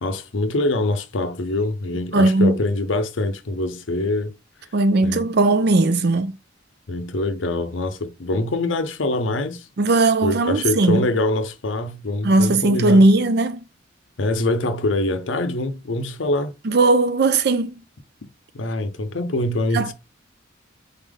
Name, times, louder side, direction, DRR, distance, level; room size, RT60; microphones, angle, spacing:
voice 1, 0.0-4.3 5.0-5.3 6.9-9.7 10.2-13.1 14.2-16.5 18.5-19.9, left 2 dB, 75° left, 0.7 m, -24 dB
voice 2, 2.1-2.6 4.7-6.3 9.8-11.0 12.2-13.6 16.6-17.7 19.7-19.9, right 2 dB, 55° right, 0.5 m, -17 dB
4.1 x 3.5 x 3.6 m
head